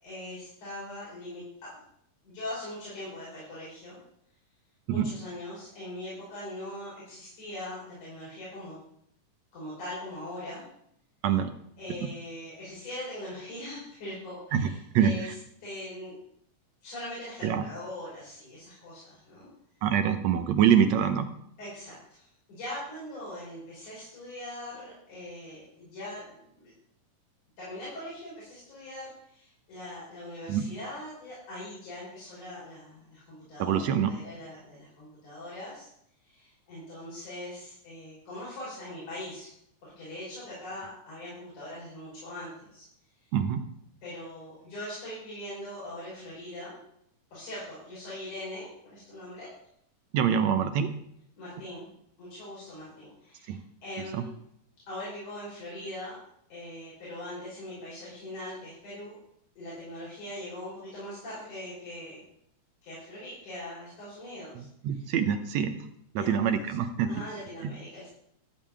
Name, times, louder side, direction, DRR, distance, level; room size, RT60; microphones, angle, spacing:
voice 1, 0.0-1.4 2.2-4.0 4.9-8.7 9.5-10.6 11.8-14.7 15.0-15.3 15.6-16.2 16.8-19.5 21.6-26.7 27.6-35.9 36.2-39.5 39.8-42.8 44.0-46.8 47.3-49.5 51.4-51.9 52.2-54.3 54.9-56.2 56.5-59.2 59.6-62.2 62.8-64.7 66.2-66.7 67.1-68.1, left 1 dB, 65° left, -9 dB, 7.0 m, -41 dB
voice 2, 14.5-15.3 17.4-17.6 19.8-21.3 30.5-30.7 33.6-34.1 43.3-43.6 50.1-50.9 53.5-53.6 54.1-54.2 64.6-65.9 66.2-67.1 67.6-67.7, right 8 dB, 70° right, 8 dB, 1.8 m, -25 dB
14.5 x 5.4 x 8.5 m, 0.72 s
omnidirectional pair, 3.7 m